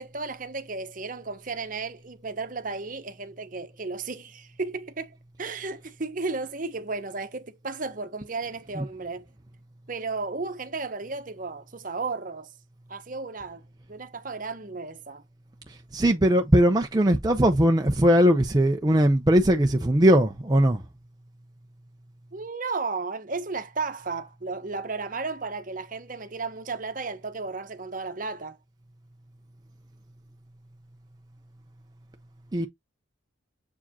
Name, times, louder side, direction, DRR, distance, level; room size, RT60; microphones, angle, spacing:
voice 1, 0.0-9.2 9.9-12.5 12.9-13.6 13.9-15.2 22.3-28.6, right 4 dB, 45° right, 0.9 m, -34 dB
voice 2, 15.7-20.8 32.5-32.7, equal, 20° right, 0.6 m, -20 dB
7.3 x 4.8 x 2.8 m
head